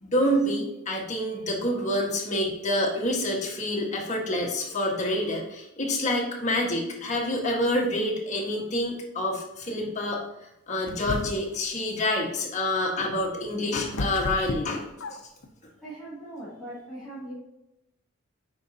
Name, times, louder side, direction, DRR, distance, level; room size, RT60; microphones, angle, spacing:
voice 1, 0.0-10.2 10.7-15.2, left 1 dB, 35° left, -2 dB, 1.6 m, -27 dB
sound 1, 10.9-11.6 13.2-15.5, left 2 dB, 55° left, 0.7 m, -33 dB
voice 2, 15.8-17.3, right 1 dB, ahead, -12 dB, 2.7 m, -40 dB
8.9 x 5.2 x 2.9 m, 0.88 s
head